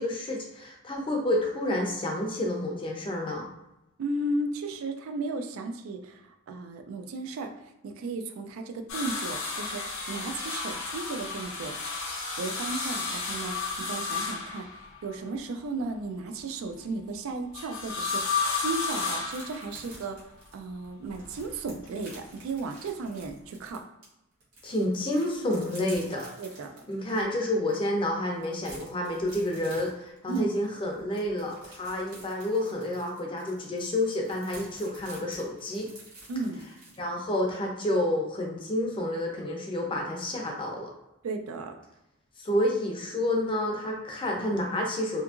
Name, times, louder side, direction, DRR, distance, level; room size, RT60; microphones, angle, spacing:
voice 1, 0.0-3.5 24.6-26.3 26.9-35.9 37.0-40.9 42.4-45.2, left 1 dB, 25° left, -1 dB, 0.5 m, -29 dB
voice 2, 4.0-7.5 7.8-11.7 12.4-14.7 15.0-20.2 20.5-23.8 26.4-26.7 30.3-30.5 36.3-36.6 41.2-41.7, right 3 dB, 70° right, 6 dB, 0.3 m, -35 dB
sound 1, 8.9-15.2 17.5-20.0 21.1-21.9 23.3-23.4, left 4 dB, 65° left, 0.6 m, -33 dB
sound 2, 19.2-24.1 24.4-27.2 27.7-27.8 28.1-37.0, right 2 dB, 90° right, 1.3 m, -50 dB
2.7 x 2.5 x 2.4 m, 0.91 s
head